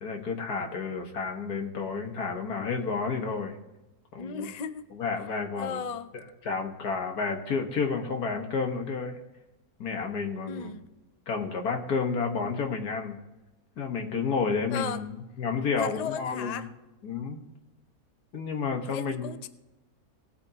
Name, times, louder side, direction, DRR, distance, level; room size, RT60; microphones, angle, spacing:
voice 1, 0.0-3.6 4.1-4.5 4.9-5.8 6.1-9.2 9.8-10.7 11.3-13.2 13.8-16.6 17.0-17.4 18.3-19.3, left 5 dB, 90° left, 3 dB, 2.0 m, -31 dB
voice 2, 4.2-4.8 5.6-6.1 10.4-10.9 14.7-15.0 15.8-16.7 18.9-19.5, left 6 dB, 55° left, 11 dB, 0.4 m, -35 dB
18.5 x 8.6 x 2.9 m, 1.0 s
omnidirectional pair, 1.6 m